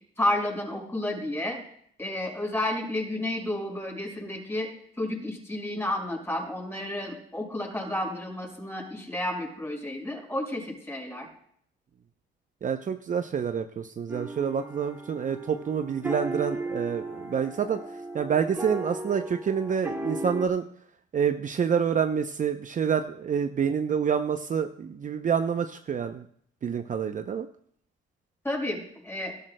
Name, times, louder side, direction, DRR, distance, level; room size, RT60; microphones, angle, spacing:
voice 1, 0.2-1.6 2.0-4.7 5.0-11.3 28.4-29.3, left 1 dB, 10° left, 0 dB, 5.4 m, -31 dB
voice 2, 12.6-20.6 21.1-26.2 26.6-27.5, right 7 dB, 40° right, 7 dB, 0.6 m, -27 dB
sound 1, 14.1-20.4, right 2 dB, 10° right, 2.2 m, -36 dB
23.0 x 13.0 x 2.2 m, 0.65 s
cardioid pair, 90°, 20 cm